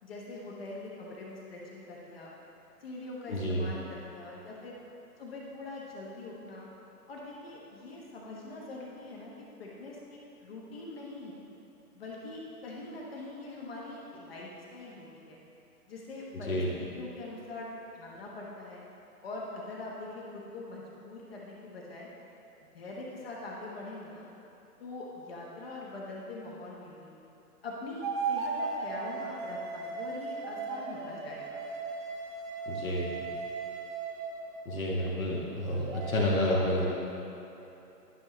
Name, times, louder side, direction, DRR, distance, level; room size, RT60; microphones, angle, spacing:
voice 1, 0.0-2.3 2.8-4.7 5.2-6.7 7.1-9.3 9.6-11.4 11.9-15.4 15.9-17.7 17.9-18.8 19.2-22.1 22.7-24.3 24.8-27.1 27.6-31.7, left 2 dB, 40° left, -4 dB, 1.2 m, -43 dB
voice 2, 3.3-3.7 16.5-16.7 32.7-33.3 34.6-36.9, left 1 dB, 60° left, -4 dB, 1.6 m, -29 dB
sound 1, 28.0-34.7 35.6-36.3, right 4 dB, 30° right, 0.7 m, -36 dB
12.0 x 5.7 x 3.1 m, 3.0 s
figure-of-eight pair, 130°, 47 cm